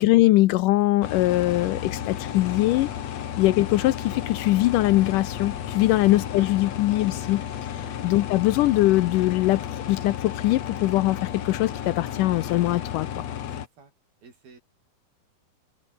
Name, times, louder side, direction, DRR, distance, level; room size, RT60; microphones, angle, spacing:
voice 1, 0.0-2.9 3.4-7.4 8.0-13.1, left 17 dB, 75° left, 2.1 m, -22 dB
sound 1, 1.0-13.7, left 10 dB, 55° left, 2.3 m, -33 dB
sound 2, 1.1-13.0, right 3 dB, 30° right, 6.2 m, -56 dB
sound 3, 1.5-6.5, right 5 dB, 70° right, 7.7 m, -56 dB
voice 2, 13.5-13.9 14.2-14.6, right 4 dB, 90° right, 8.6 m, -50 dB
omnidirectional pair, 4.2 m